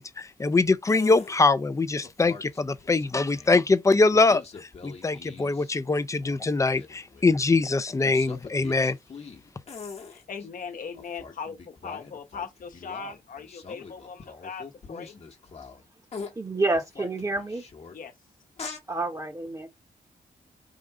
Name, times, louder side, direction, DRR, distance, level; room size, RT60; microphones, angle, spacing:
voice 1, 0.0-9.0, left 3 dB, 20° left, 0.5 m, -23 dB
sound 1, 0.9-1.4 2.0-3.6 4.1-5.7 6.0-7.5 8.0-10.5 10.9-15.8 16.1-16.3 16.7-17.9 18.6-18.8, left 5 dB, 40° left, 1.2 m, -43 dB
voice 2, 10.1-15.2 17.9-18.1, left 5 dB, 60° left, 1.1 m, -39 dB
voice 3, 16.3-17.7 18.9-19.7, right 2 dB, 20° right, 1.0 m, -28 dB
3.7 x 2.6 x 4.7 m
cardioid pair, 95°, 15 cm